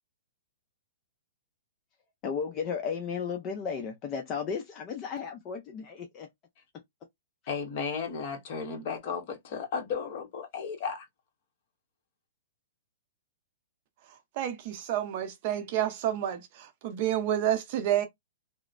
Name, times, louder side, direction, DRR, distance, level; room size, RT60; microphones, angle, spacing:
voice 1, 2.2-6.3, left 6 dB, 30° left, 0.5 m, -34 dB
voice 2, 7.5-11.1, left 6 dB, 45° left, 1.1 m, -34 dB
voice 3, 14.4-18.1, right 11 dB, 45° right, 0.6 m, -29 dB
3.0 x 2.0 x 2.4 m
hypercardioid pair, 140°, 0 cm